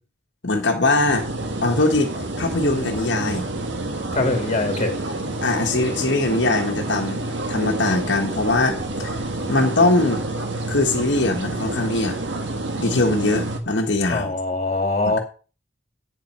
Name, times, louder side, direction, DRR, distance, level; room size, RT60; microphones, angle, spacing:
voice 1, 0.4-1.3 1.6-3.5 5.4-7.2 7.5-9.2 9.5-10.2 10.7-12.2 12.8-14.3, left 2 dB, 70° left, 2 dB, 1.4 m, -21 dB
sound 1, 0.8-13.6, right 2 dB, 70° right, 1.8 m, -29 dB
voice 2, 4.1-5.0 14.1-15.2, left 2 dB, 35° left, 4 dB, 2.3 m, -22 dB
9.1 x 7.6 x 5.5 m, 0.36 s
head